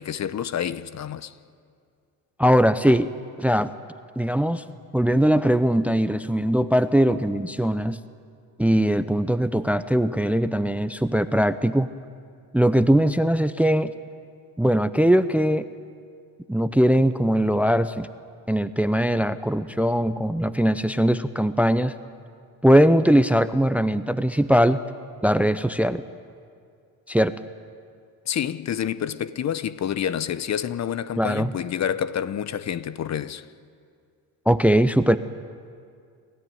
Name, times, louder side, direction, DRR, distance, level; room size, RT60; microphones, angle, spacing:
voice 1, 0.0-1.3 28.3-33.4, left 9 dB, 45° left, 0.8 m, -28 dB
voice 2, 2.4-3.1 3.4-3.7 4.2-4.6 4.9-8.0 8.6-11.9 12.5-13.9 14.6-15.7 16.5-18.1 18.5-21.9 22.6-24.8 25.2-26.0 27.1-27.3 31.2-31.5 34.5-35.2, equal, 5° right, 0.6 m, -20 dB
28.5 x 14.0 x 9.3 m
supercardioid pair, 80°, 40 cm